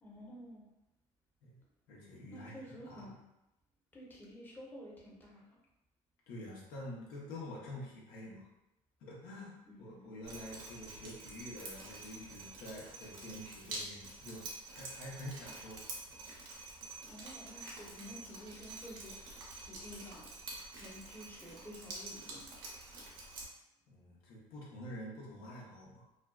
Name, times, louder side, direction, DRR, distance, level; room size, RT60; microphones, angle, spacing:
voice 1, 0.0-0.6 2.3-3.1 3.9-5.5 9.7-10.2 17.1-20.2 20.8-22.4, equal, 15° left, -4 dB, 0.7 m, -51 dB
voice 2, 1.9-3.2 6.3-8.4 9.0-15.8 23.9-26.0, left 1 dB, 75° left, -4 dB, 0.8 m, -47 dB
Drip, 10.2-23.4, right 2 dB, 85° right, 0.7 m, -48 dB
2.5 x 2.2 x 2.3 m, 0.90 s
supercardioid pair, 85°, 14 cm